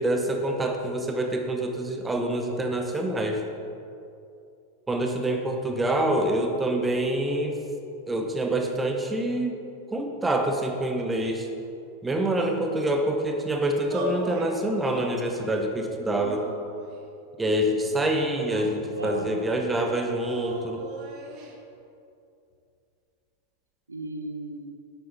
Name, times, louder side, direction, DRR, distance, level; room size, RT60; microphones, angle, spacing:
voice 1, 0.0-3.4 4.9-7.6 8.1-9.6 9.9-11.5 12.0-16.5 17.4-20.8, right 1 dB, 10° right, 4 dB, 1.1 m, -26 dB
voice 2, 6.0-6.4 18.5-19.4 23.9-24.7, right 2 dB, 80° right, 5 dB, 0.7 m, -35 dB
sound 1, 13.9-14.5 14.8-15.5 16.2-17.1 17.8-18.8 20.2-21.5, equal, 40° right, 1.4 m, -38 dB
11.0 x 8.3 x 4.0 m, 2.6 s
figure-of-eight pair, 90°, 0 cm